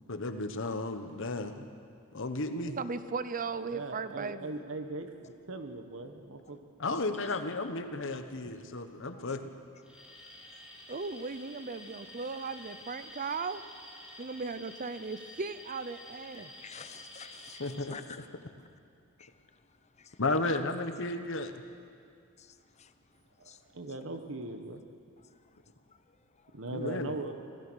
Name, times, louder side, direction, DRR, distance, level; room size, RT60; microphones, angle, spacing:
voice 1, 0.1-1.6 2.1-2.8 6.8-9.5 17.6-17.9 20.2-21.6 26.7-27.1, left 2 dB, 65° left, 8 dB, 1.2 m, -33 dB
voice 2, 2.7-4.5 10.9-13.6 14.2-16.5, right 4 dB, 40° right, 12 dB, 0.7 m, -37 dB
voice 3, 3.5-6.6 8.4-8.5 23.4-24.8 26.5-27.3, right 2 dB, 65° right, 6 dB, 1.5 m, -40 dB
Alarm, 9.8-17.8, left 1 dB, 5° right, 4.7 m, -50 dB
voice 4, 9.9-10.9 14.2-14.3 16.3-18.7 19.2-20.6 22.4-24.1 25.2-26.9, left 5 dB, 35° left, 10 dB, 0.8 m, -52 dB
25.5 x 16.5 x 6.4 m, 2.4 s
head